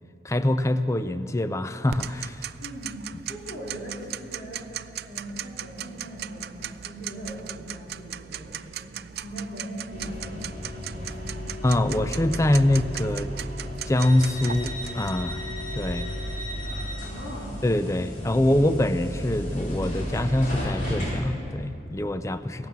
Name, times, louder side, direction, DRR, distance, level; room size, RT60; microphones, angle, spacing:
voice 1, 0.2-2.4 11.6-13.3 13.9-15.4 15.7-16.1 17.6-22.7, left 1 dB, 15° left, 11 dB, 0.4 m, -24 dB
Tick-tock, 1.9-15.1, right 10 dB, 60° right, 0.3 m, -38 dB
voice 2, 2.6-4.6 5.1-8.9 9.2-11.5 17.0-17.6 22.6-22.7, equal, 65° left, -5 dB, 4.0 m, -40 dB
sound 1, 9.9-21.2, equal, 45° left, 3.2 m, -34 dB
16.5 x 12.0 x 7.3 m, 2.5 s
head